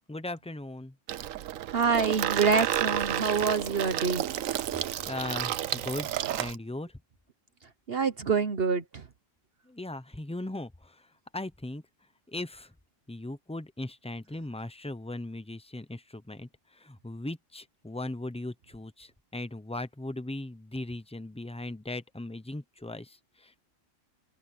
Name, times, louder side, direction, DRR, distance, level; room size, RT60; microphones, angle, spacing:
voice 1, 0.1-0.9 4.7-6.1 6.4-6.9 9.7-11.1 11.3-11.8 12.3-12.7 13.1-23.6, left 2 dB, 5° left, 0.6 m, -38 dB
Water tap faucet / Sink (filling or washing), 1.1-6.6, right 12 dB, 85° right, 1.1 m, -31 dB
voice 2, 1.7-4.2 7.9-9.0, right 5 dB, 50° right, 1.1 m, -26 dB
open air
omnidirectional pair, 1.4 m